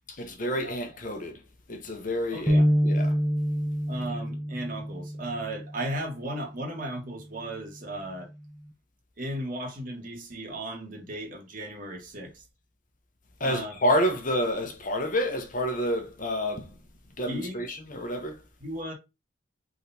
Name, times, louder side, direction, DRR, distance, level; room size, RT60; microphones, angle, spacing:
voice 1, 0.1-1.4 1.7-3.1 13.4-16.7 17.2-18.4, equal, 45° left, 1.0 m, -29 dB
voice 2, 2.3-2.7 3.9-8.3 9.2-12.4 13.4-13.7 17.3-17.7 18.6-18.9, right 1 dB, 45° right, 1.7 m, -36 dB
sound 1, 2.5-6.0, equal, 5° left, 0.9 m, -26 dB
5.0 x 3.8 x 2.8 m
head